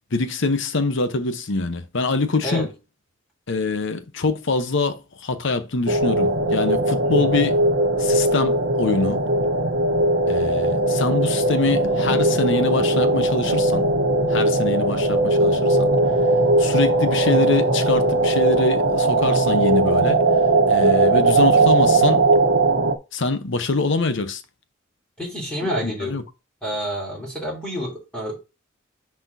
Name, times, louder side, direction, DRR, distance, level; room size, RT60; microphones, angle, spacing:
voice 1, 0.1-2.7 3.5-7.6 8.0-9.2 10.3-13.9 14.3-15.9 16.6-20.2 20.7-22.3 23.1-24.4 25.8-26.2, left 3 dB, 65° left, 0.9 m, -24 dB
sound 1, 5.9-22.9, right 2 dB, 85° right, 1.1 m, -19 dB
voice 2, 7.2-7.5 25.2-26.2 26.6-28.4, equal, 5° left, 3.2 m, -29 dB
10.0 x 4.3 x 2.7 m
head